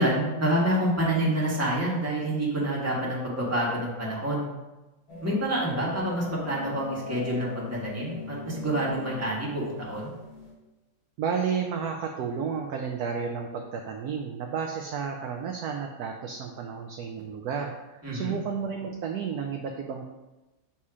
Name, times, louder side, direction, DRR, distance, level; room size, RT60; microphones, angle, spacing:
voice 1, 0.0-4.5 5.2-10.1 18.0-18.4, right 1 dB, 10° right, -5 dB, 1.2 m, -27 dB
sound 1, 5.1-10.5, left 3 dB, 85° left, 2.0 m, -40 dB
voice 2, 11.2-20.0, right 6 dB, 75° right, 3 dB, 0.9 m, -32 dB
7.3 x 2.9 x 4.8 m, 1.1 s
omnidirectional pair, 2.1 m